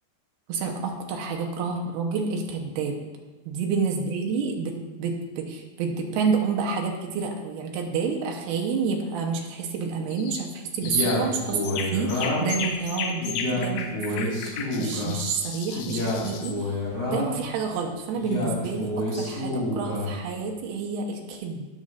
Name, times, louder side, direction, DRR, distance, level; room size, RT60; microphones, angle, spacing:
voice 1, 0.5-3.0 3.5-14.4 14.8-16.7 17.1-21.7, right 5 dB, 75° right, 2 dB, 2.6 m, -29 dB
sound 1, 10.1-10.5 10.8-11.2 11.6-16.6, left 6 dB, 80° left, 2.3 m, -34 dB
Male speech man speaking, 10.8-12.6 13.2-15.2 15.7-17.4 18.1-20.1, left 1 dB, 35° left, 1.6 m, -28 dB
16.0 x 6.4 x 2.5 m, 1.2 s
omnidirectional pair, 5.1 m